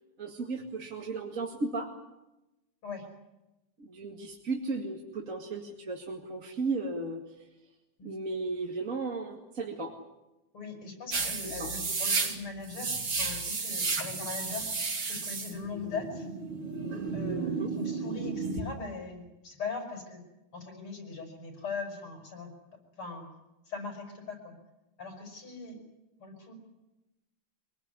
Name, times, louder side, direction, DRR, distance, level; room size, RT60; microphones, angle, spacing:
voice 1, 0.2-1.9 3.8-7.2 8.0-10.0 11.4-11.7 17.5-17.8, right 3 dB, 35° right, 2 dB, 2.5 m, -35 dB
voice 2, 10.5-14.7 15.1-16.3 17.1-20.2 20.5-22.5 23.0-23.3 23.7-24.5 25.0-25.8 26.2-26.5, left 4 dB, 75° left, 4 dB, 7.3 m, -40 dB
sound 1, 11.1-18.6, right 4 dB, 90° right, 4.1 m, -33 dB
25.0 x 19.0 x 9.9 m, 0.97 s
omnidirectional pair, 2.4 m